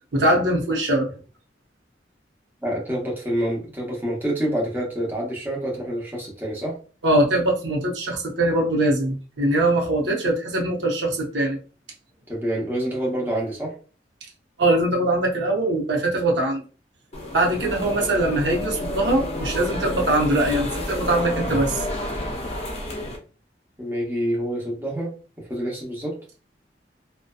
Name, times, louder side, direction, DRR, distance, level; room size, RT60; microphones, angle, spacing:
voice 1, 0.1-1.1 7.0-11.6 14.6-16.6 17.3-21.8, right 1 dB, 90° right, 0 dB, 0.8 m, -22 dB
voice 2, 2.6-6.8 12.3-13.8 23.8-26.2, right 1 dB, 10° right, -4 dB, 0.7 m, -27 dB
sound 1, 17.1-23.2, left 1 dB, 35° left, 0.6 m, -30 dB
2.6 x 2.2 x 2.3 m, 0.37 s
head